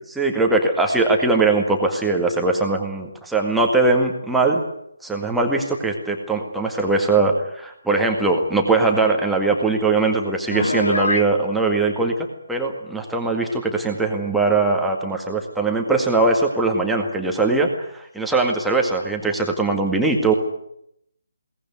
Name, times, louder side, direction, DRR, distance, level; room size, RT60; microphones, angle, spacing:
voice 1, 0.1-4.6 5.0-12.1 12.5-20.3, right 3 dB, ahead, 0 dB, 2.0 m, -21 dB
Piano, 10.5-11.3, left 2 dB, 70° left, 1.6 m, -23 dB
22.5 x 18.0 x 9.6 m, 0.76 s
figure-of-eight pair, 145°, 0 cm